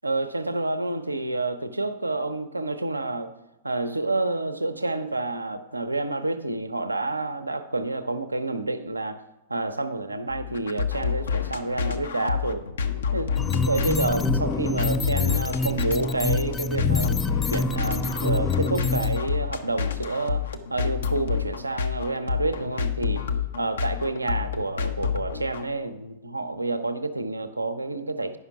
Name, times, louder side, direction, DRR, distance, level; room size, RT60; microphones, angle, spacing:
voice 1, 0.0-3.3 3.6-9.2 9.5-12.7 13.1-17.2 17.5-23.2 23.6-28.4, right 2 dB, 85° right, 9 dB, 0.7 m, -29 dB
sound 1, 10.3-25.7, left 7 dB, 65° left, 0.8 m, -29 dB
sound 2, 13.4-19.2, left 3 dB, 15° left, 0.3 m, -26 dB
9.7 x 5.8 x 5.9 m, 0.95 s
figure-of-eight pair, 105°, 0 cm